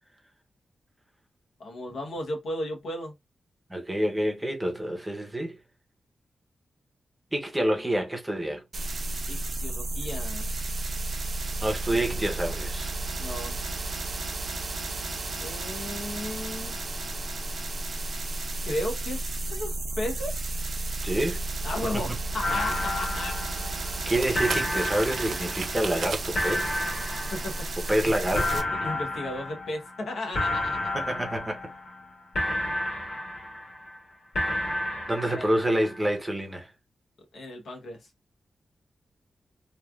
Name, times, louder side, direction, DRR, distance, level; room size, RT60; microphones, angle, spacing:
voice 1, 1.6-3.1 9.3-10.5 11.9-12.4 13.2-13.6 15.4-16.8 18.6-20.5 21.6-23.4 27.3-27.5 28.0-28.1 28.8-30.9 35.1-35.5 37.3-38.0, left 1 dB, 80° left, 0.9 m, -35 dB
voice 2, 3.7-5.6 7.3-8.6 11.6-12.9 21.0-21.4 24.1-26.9 27.9-28.6 30.9-31.6 35.1-36.7, right 1 dB, 10° right, 0.7 m, -27 dB
sound 1, 8.7-28.6, right 2 dB, 45° right, 0.6 m, -33 dB
sound 2, 22.4-24.1 24.3-26.0 26.4-28.0 28.3-30.1 30.3-32.1 32.3-34.0 34.4-36.0, left 1 dB, 50° left, 1.6 m, -31 dB
sound 3, 22.7-23.1 23.4-23.5 24.0-26.4, right 5 dB, 85° right, 0.6 m, -37 dB
3.1 x 2.4 x 2.3 m
wide cardioid pair, 165°, 0 cm